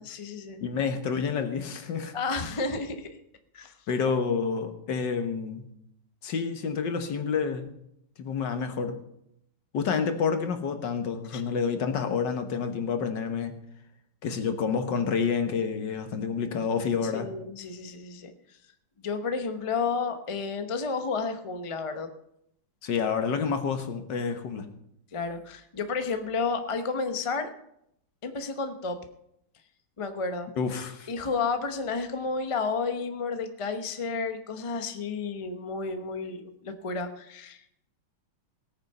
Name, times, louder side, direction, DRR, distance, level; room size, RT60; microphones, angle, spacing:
voice 1, 0.0-0.6 2.1-3.2 3.5-3.7 11.3-11.4 17.1-18.3 19.0-22.1 25.1-27.5 28.2-29.0 30.0-30.5 31.1-37.6, left 4 dB, 35° left, 7 dB, 0.5 m, -31 dB
voice 2, 0.6-2.2 3.9-5.7 6.2-7.7 8.2-9.0 9.7-13.6 14.2-17.3 22.8-24.7 30.6-31.1, left 6 dB, 65° left, 7 dB, 1.8 m, -29 dB
17.5 x 9.1 x 5.5 m, 0.77 s
omnidirectional pair, 2.2 m